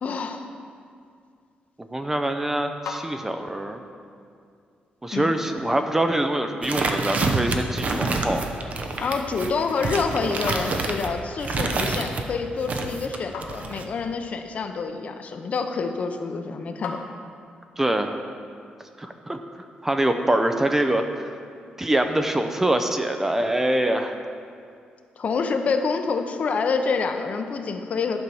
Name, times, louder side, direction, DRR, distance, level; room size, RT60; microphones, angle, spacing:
voice 1, 0.0-0.4 5.1-5.3 9.0-17.0 25.2-28.2, left 4 dB, 50° left, 6 dB, 0.7 m, -27 dB
voice 2, 1.8-3.8 5.0-8.5 17.8-18.2 19.0-19.4 19.8-21.2 21.8-24.2, right 1 dB, 10° right, 6 dB, 0.5 m, -24 dB
sound 1, 2.4-17.7, left 4 dB, 85° left, 1.1 m, -44 dB
sound 2, 6.6-12.2 12.6-13.9, right 3 dB, 50° right, 0.8 m, -27 dB
11.5 x 4.5 x 6.9 m, 2.3 s
cardioid pair, 135°, 3 cm